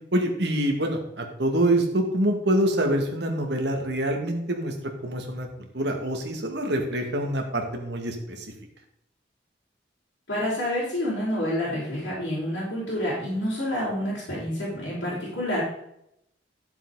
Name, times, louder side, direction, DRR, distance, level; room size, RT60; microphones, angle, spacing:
voice 1, 0.1-4.7 5.0-8.5, right 1 dB, 65° right, 3 dB, 2.0 m, -26 dB
voice 2, 10.3-15.6, left 1 dB, 75° left, -9 dB, 4.7 m, -28 dB
12.5 x 7.3 x 4.0 m, 0.78 s
head